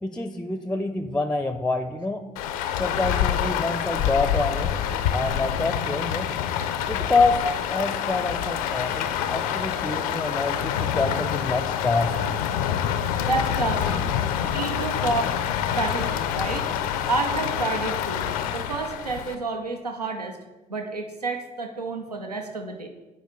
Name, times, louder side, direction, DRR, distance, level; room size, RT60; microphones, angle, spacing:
voice 1, 0.0-2.2 2.8-4.7 5.1-6.3 6.9-7.4 7.7-12.1, left 3 dB, 5° left, 9 dB, 0.5 m, -26 dB
Rain, 2.4-19.4, left 9 dB, 70° left, 0.5 m, -26 dB
voice 2, 13.3-14.0 14.5-15.3 15.7-16.7 17.1-18.3 18.5-20.4 20.7-22.9, right 3 dB, 90° right, 4 dB, 0.4 m, -29 dB
9.1 x 4.7 x 3.7 m, 1.2 s
figure-of-eight pair, 45°, 20 cm